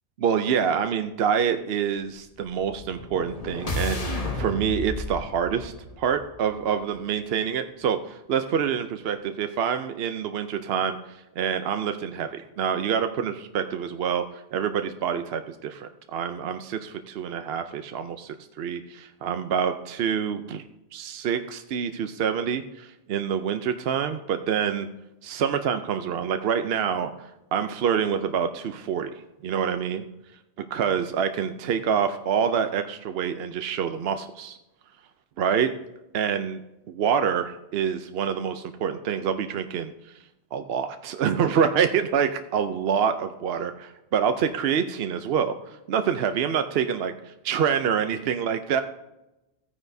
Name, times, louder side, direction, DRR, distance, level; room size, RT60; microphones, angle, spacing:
voice 1, 0.2-20.6 20.9-24.9 25.2-27.1 27.5-29.1 29.4-30.0 30.7-34.6 35.4-35.7 36.1-36.6 36.9-40.1 40.5-48.8, right 7 dB, 70° right, 8 dB, 0.8 m, -26 dB
sound 1, 2.5-6.7, left 1 dB, 35° left, 1.2 m, -33 dB
15.5 x 9.7 x 2.7 m, 0.93 s
omnidirectional pair, 1.1 m